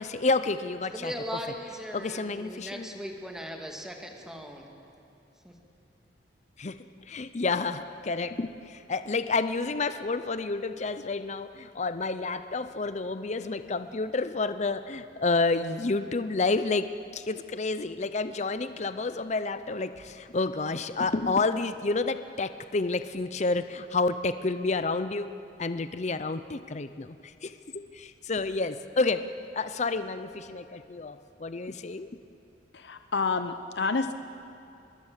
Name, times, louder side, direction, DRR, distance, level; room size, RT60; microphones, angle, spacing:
voice 1, 0.0-1.1 1.9-3.0 6.6-25.3 25.6-29.3 29.5-32.1, left 3 dB, 40° left, 11 dB, 0.6 m, -30 dB
voice 2, 0.9-4.7 5.4-5.5, equal, 5° right, 2 dB, 2.3 m, -38 dB
voice 3, 32.7-34.1, left 4 dB, 70° left, 8 dB, 0.8 m, -29 dB
24.5 x 21.5 x 7.4 m, 2.8 s
head